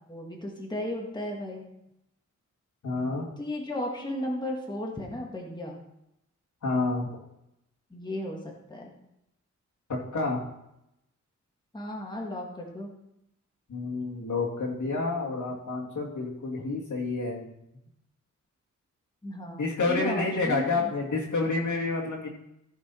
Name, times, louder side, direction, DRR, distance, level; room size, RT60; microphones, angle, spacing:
voice 1, 0.1-1.6 3.4-5.8 7.9-8.9 11.7-12.9 19.2-20.9, left 1 dB, 15° left, -1 dB, 1.7 m, -35 dB
voice 2, 2.8-3.3 6.6-7.1 9.9-10.4 13.7-17.5 19.6-22.3, left 3 dB, 75° left, -2 dB, 2.6 m, -29 dB
14.5 x 6.2 x 4.3 m, 0.82 s
wide cardioid pair, 160°, 30 cm